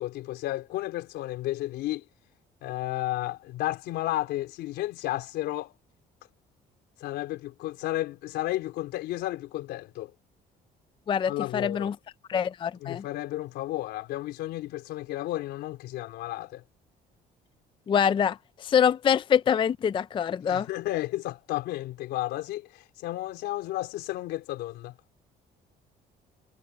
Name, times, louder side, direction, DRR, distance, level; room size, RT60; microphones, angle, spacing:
voice 1, 0.0-2.0 2.6-5.7 7.0-10.1 11.3-11.9 12.8-16.6 20.5-25.0, left 16 dB, 85° left, 4.0 m, -32 dB
voice 2, 11.1-12.0 12.3-13.0 17.9-20.7, left 8 dB, 30° left, 0.4 m, -25 dB
cardioid pair, 110°, 17 cm